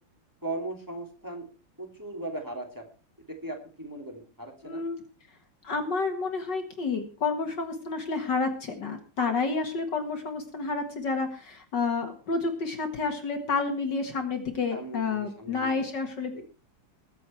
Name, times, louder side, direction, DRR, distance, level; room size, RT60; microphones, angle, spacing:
voice 1, 0.4-1.5 1.8-2.8 3.3-4.8 14.7-15.8 16.3-16.4, right 2 dB, 10° right, 1 dB, 2.8 m, -38 dB
voice 2, 4.6-5.0 5.6-16.4, left 4 dB, 55° left, 5 dB, 2.4 m, -30 dB
21.5 x 7.7 x 4.5 m, 0.35 s
omnidirectional pair, 2.4 m